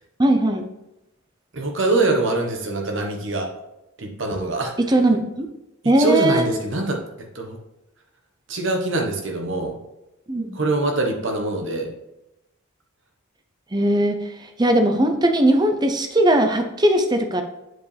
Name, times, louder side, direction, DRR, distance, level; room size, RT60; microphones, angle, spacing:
voice 1, 0.2-0.7 4.9-5.5 5.8-6.5 10.3-10.6 13.7-17.4, right 1 dB, 20° right, 6 dB, 0.6 m, -19 dB
voice 2, 1.5-3.5 4.0-4.7 5.8-7.0 7.3-7.6 8.5-9.7 10.5-11.9, right 2 dB, 55° right, 2 dB, 1.2 m, -23 dB
7.9 x 5.0 x 3.3 m, 0.91 s
head